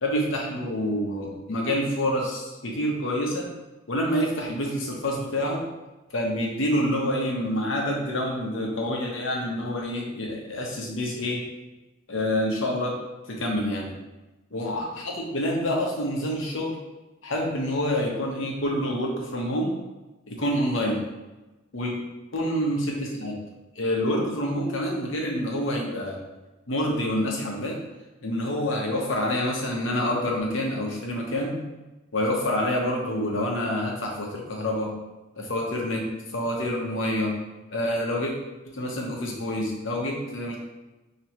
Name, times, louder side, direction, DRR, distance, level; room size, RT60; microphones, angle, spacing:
voice 1, 0.0-3.5 3.9-5.6 6.1-11.4 12.1-12.9 13.3-13.9 14.5-16.7 17.2-19.7 20.3-21.1 21.7-22.0 22.3-23.4 23.7-26.2 26.7-27.8 28.2-31.6 32.1-34.9 35.4-36.1 36.3-37.3 37.7-38.3 38.7-40.6, left 1 dB, 65° left, -1 dB, 1.0 m, -27 dB
5.7 x 3.0 x 3.0 m, 1.1 s
head